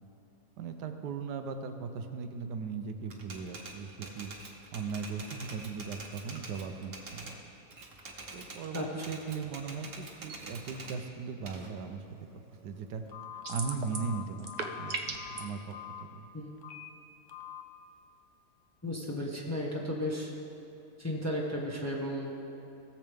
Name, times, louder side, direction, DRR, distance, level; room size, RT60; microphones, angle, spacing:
voice 1, 0.6-4.3 4.7-7.3 8.3-12.0 12.6-13.0 13.5-14.5 14.8-16.3, right 5 dB, 85° right, 7 dB, 1.3 m, -38 dB
Typewriter, 3.1-7.4 7.7-11.0 11.5-13.1, right 3 dB, 40° right, 1.1 m, -46 dB
Telephone, 13.1-16.0 16.6-16.9 17.3-17.6, left 10 dB, 55° left, 0.9 m, -44 dB
sound 1, 13.4-14.1 14.4-15.4, right 4 dB, 70° right, 0.4 m, -36 dB
voice 2, 18.8-20.3 21.0-22.3, left 1 dB, 10° left, -3 dB, 0.9 m, -34 dB
17.5 x 7.3 x 3.5 m, 2.9 s
omnidirectional pair, 1.7 m